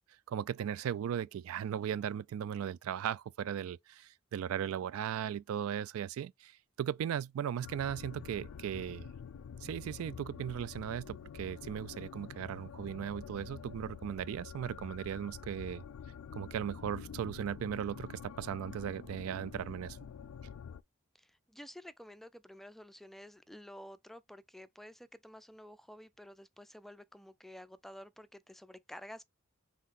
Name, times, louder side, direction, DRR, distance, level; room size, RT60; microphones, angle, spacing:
voice 1, 0.3-6.5 6.8-9.1 9.6-15.8 16.3-20.0, right 9 dB, 85° right, 0.3 m, -37 dB
sound 1, 7.6-20.8, left 7 dB, 90° left, 0.4 m, -47 dB
voice 2, 21.1-29.2, left 1 dB, ahead, 0.3 m, -51 dB
5.7 x 3.5 x 2.5 m
head